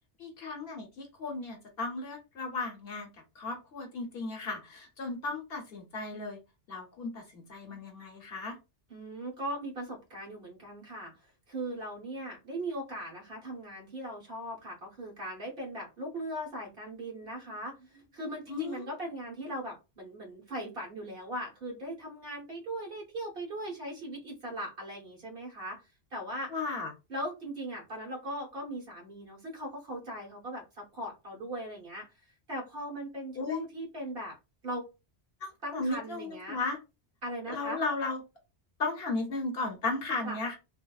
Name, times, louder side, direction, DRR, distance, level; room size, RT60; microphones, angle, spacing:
voice 1, 0.2-3.1 3.4-6.4 6.7-8.6 18.5-18.8 26.5-26.9 33.4-33.6 35.4-36.8 37.5-38.2 38.8-40.6, left 3 dB, 60° left, 1 dB, 0.9 m, -35 dB
voice 2, 8.9-11.1 11.5-25.8 26.1-26.5 27.1-32.2 32.5-34.4 34.6-34.9 35.6-36.6 37.2-37.8 40.2-40.4, right 1 dB, 55° right, -1 dB, 1.1 m, -39 dB
3.4 x 2.2 x 2.3 m, 0.27 s
omnidirectional pair, 1.2 m